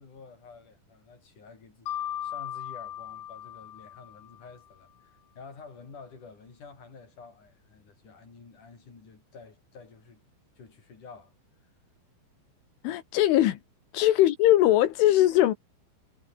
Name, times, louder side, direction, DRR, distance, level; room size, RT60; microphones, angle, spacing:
voice 1, 0.0-10.2 10.6-11.3, left 4 dB, 40° left, 7.4 m, -50 dB
Mallet percussion, 1.9-4.6, left 11 dB, 60° left, 2.3 m, -37 dB
voice 2, 12.8-13.6 13.9-15.5, left 14 dB, 85° left, 4.1 m, -21 dB
omnidirectional pair, 5.5 m